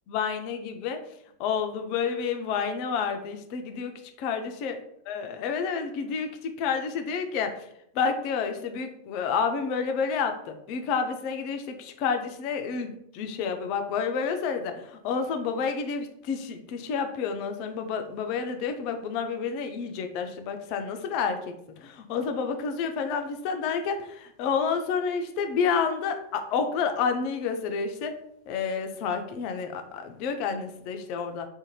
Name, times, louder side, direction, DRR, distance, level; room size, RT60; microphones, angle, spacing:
voice 1, 0.1-1.0 1.4-3.9 4.2-4.8 5.1-7.5 7.9-14.7 15.0-21.5 21.8-28.1 28.5-31.5, left 6 dB, 45° left, 6 dB, 0.3 m, -29 dB
2.5 x 2.2 x 3.0 m, 0.75 s
figure-of-eight pair, 90°, 0 cm